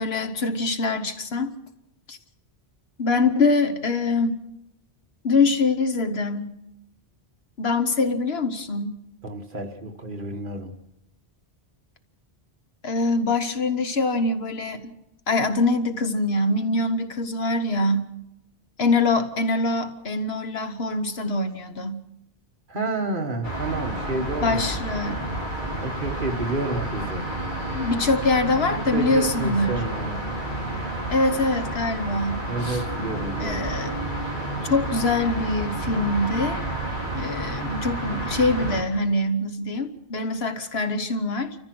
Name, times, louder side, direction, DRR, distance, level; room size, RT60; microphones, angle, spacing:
voice 1, 0.0-1.5 2.1-2.2 3.0-4.4 5.2-6.5 7.6-9.0 12.8-14.9 15.3-18.1 18.8-22.0 24.4-25.2 27.7-29.8 31.1-32.8 33.4-33.9 34.7-36.6 37.1-41.6, left 3 dB, 65° left, 8 dB, 1.4 m, -24 dB
voice 2, 9.2-10.7 22.7-24.8 25.8-27.3 28.9-30.2 32.5-33.7, right 2 dB, 50° right, 4 dB, 1.7 m, -30 dB
sound 1, 23.4-38.8, right 1 dB, 45° left, 3.4 m, -30 dB
29.5 x 14.5 x 6.1 m, 0.86 s
omnidirectional pair, 1.1 m